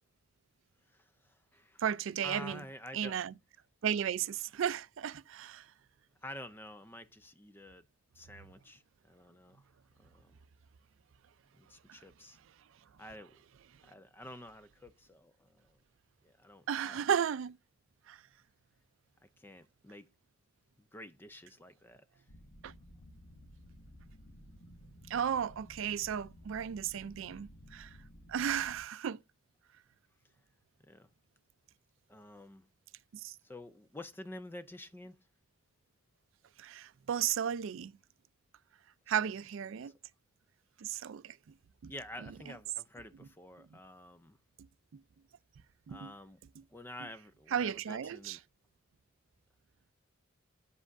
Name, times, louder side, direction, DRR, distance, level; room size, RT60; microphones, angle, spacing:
voice 1, 0.9-1.8 2.2-3.2 6.2-7.8 8.1-9.6 10.0-10.3 11.6-12.4 13.0-13.4 13.8-15.8 16.2-17.1 19.4-20.1 20.9-22.2 30.9-31.1 32.1-32.7 33.4-35.2 39.8-39.9 41.9-44.4 45.9-46.4 46.7-48.4, left 1 dB, 10° left, 0.4 m, -49 dB
voice 2, 1.8-2.6 2.9-3.3 3.8-5.6 16.7-17.6 18.1-18.2 22.6-22.7 25.1-27.9 28.3-29.2 33.2-33.3 36.6-37.9 39.1-39.9 40.8-41.3 41.8-41.9 45.9-46.1 47.5-48.4, right 8 dB, 70° right, 0.4 m, -34 dB
sound 1, 22.3-28.8, equal, 80° left, 1.3 m, -55 dB
8.1 x 7.5 x 2.5 m
head